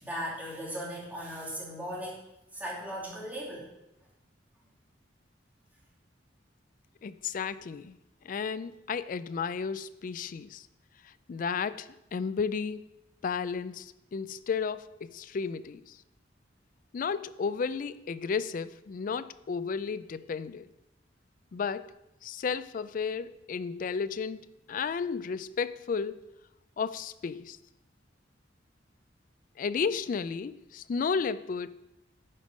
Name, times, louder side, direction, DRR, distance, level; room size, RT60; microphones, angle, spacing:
voice 1, 0.0-2.2 2.5-3.6, equal, 10° right, 2.5 m, -37 dB
voice 2, 7.0-8.0 8.2-10.7 11.0-12.8 13.2-16.0 16.9-20.7 21.5-21.9 22.2-26.2 26.8-27.6 29.6-31.7, left 5 dB, 45° left, 0.3 m, -33 dB
9.6 x 5.2 x 5.1 m
head